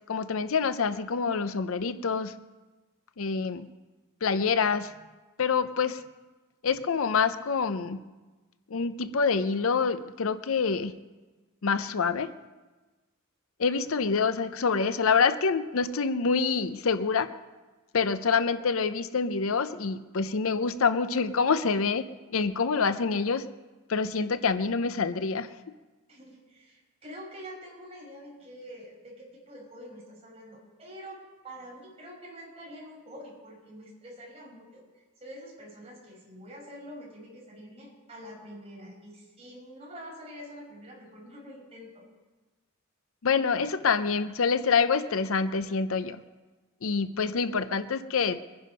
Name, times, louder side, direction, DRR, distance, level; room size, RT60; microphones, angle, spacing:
voice 1, 0.1-2.3 3.2-3.7 4.2-4.9 5.4-6.0 6.6-8.0 8.7-10.9 11.6-12.3 13.6-17.3 17.9-23.4 23.9-25.5 43.2-46.2 46.8-48.4, left 5 dB, 70° left, 12 dB, 0.6 m, -26 dB
voice 2, 26.1-34.8 35.2-42.1, equal, 30° right, -4 dB, 5.2 m, -46 dB
22.0 x 10.5 x 5.5 m, 1.2 s
head